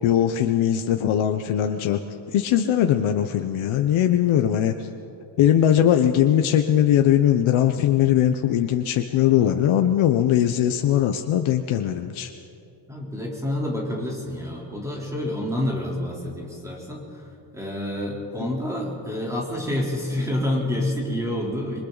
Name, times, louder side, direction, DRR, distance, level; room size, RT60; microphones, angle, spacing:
voice 1, 0.0-2.0 2.3-4.9 5.4-12.3 18.4-18.5, left 10 dB, 80° left, 6 dB, 1.0 m, -20 dB
voice 2, 12.9-17.3 17.5-21.8, left 1 dB, 5° right, -3 dB, 3.7 m, -28 dB
26.5 x 24.0 x 4.1 m, 2.7 s
cardioid pair, 165°, 47 cm